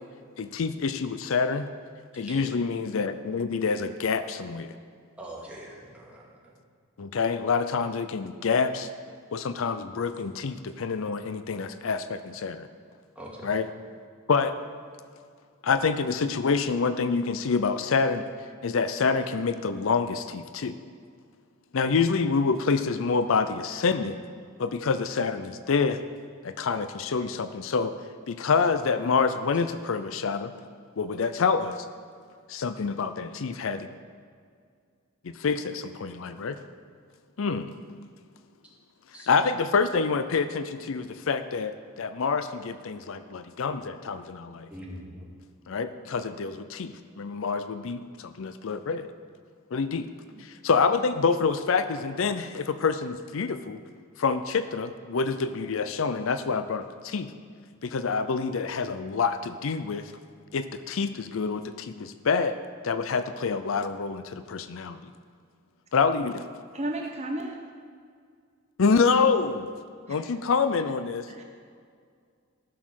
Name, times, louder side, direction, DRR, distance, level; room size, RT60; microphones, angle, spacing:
voice 1, 0.4-1.7 2.2-4.7 7.0-8.9 9.3-12.7 13.4-13.7 14.3-14.6 15.6-18.3 18.6-20.8 21.7-24.2 24.6-26.0 26.4-27.9 28.3-30.5 31.0-31.9 32.5-33.9 35.2-36.6 37.4-37.7 39.3-44.7 45.7-49.1 49.7-50.1 50.4-53.8 54.2-57.3 57.8-60.1 60.5-65.0 65.9-66.5 68.8-69.7 70.1-71.3, left 5 dB, 65° left, 11 dB, 0.5 m, -27 dB
voice 2, 2.1-2.6 5.2-6.5 13.2-13.5 39.1-39.3 44.7-45.3, right 1 dB, 5° right, -5 dB, 2.2 m, -43 dB
voice 3, 66.7-67.6 70.1-70.2 71.3-71.4, right 1 dB, 30° right, 2 dB, 0.9 m, -33 dB
14.5 x 6.3 x 6.3 m, 2.1 s
head